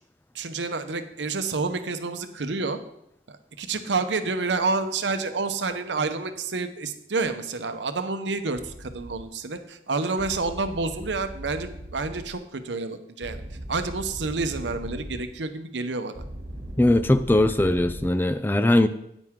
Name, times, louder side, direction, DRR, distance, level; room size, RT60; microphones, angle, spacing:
voice 1, 0.3-2.8 3.3-13.4 13.7-16.2, right 3 dB, 85° right, 9 dB, 0.8 m, -29 dB
sound 1, 8.5-9.2 10.2-12.3 13.2-15.2 16.1-18.1, right 1 dB, 60° right, 2.3 m, -39 dB
voice 2, 16.8-18.9, left 1 dB, 10° left, 11 dB, 0.4 m, -20 dB
9.6 x 9.1 x 3.7 m, 0.80 s
head